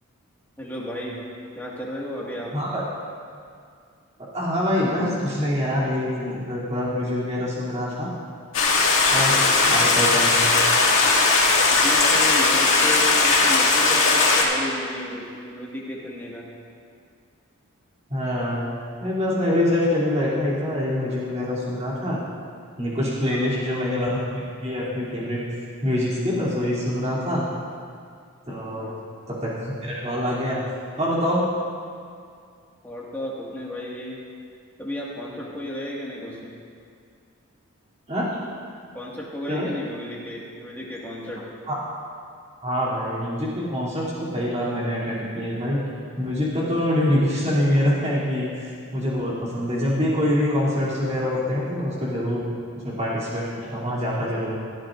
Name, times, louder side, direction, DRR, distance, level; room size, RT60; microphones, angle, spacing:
voice 1, 0.6-1.2 1.5-2.6 9.3-9.5 11.7-16.5 23.3-23.6 28.8-29.0 32.8-34.2 34.8-36.5 38.9-41.5, left 1 dB, 10° left, -5 dB, 1.8 m, -33 dB
voice 2, 4.3-8.1 9.1-9.4 9.7-10.6 18.1-18.6 19.0-22.2 22.8-27.4 28.5-28.9 29.3-30.6 31.0-31.5 38.1-38.3 39.5-39.7 41.7-41.8 42.6-45.8 46.2-52.4 52.7-54.6, left 1 dB, 30° right, -8 dB, 2.9 m, -25 dB
Stream, 8.5-14.4, left 3 dB, 60° left, 2.0 m, -18 dB
16.5 x 14.0 x 2.6 m, 2.3 s
head